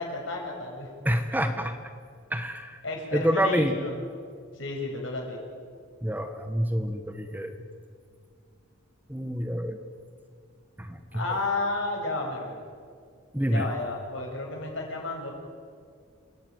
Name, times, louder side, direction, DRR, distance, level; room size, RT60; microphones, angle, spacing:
voice 1, 0.0-0.9 2.8-4.0 4.5-5.4 11.1-12.6 13.4-15.3, left 2 dB, 70° left, 0 dB, 6.8 m, -32 dB
voice 2, 1.0-1.8 2.3-2.8 3.1-3.7 6.0-7.6 9.1-9.8 10.8-11.0 13.3-13.7, equal, 10° right, 7 dB, 1.2 m, -27 dB
28.5 x 17.0 x 9.4 m, 2.2 s
head